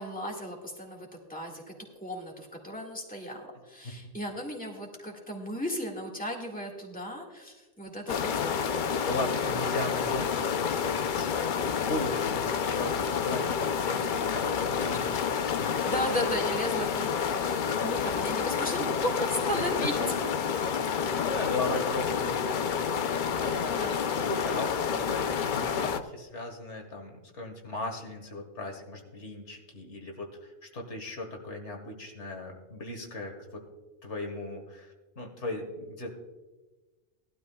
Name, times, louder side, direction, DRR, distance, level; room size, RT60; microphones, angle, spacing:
voice 1, 0.0-1.7 2.0-8.8 14.7-15.1 15.8-19.9 23.7-24.0, equal, 5° left, -1 dB, 1.9 m, -35 dB
sound 1, 8.1-26.0, left 7 dB, 55° left, 0.7 m, -29 dB
voice 2, 9.0-15.8 19.8-20.1 20.9-23.0 23.4-23.7 24.2-33.6 34.0-36.1, left 2 dB, 85° left, 3 dB, 1.9 m, -37 dB
18.0 x 12.0 x 2.3 m, 1.2 s
omnidirectional pair, 1.2 m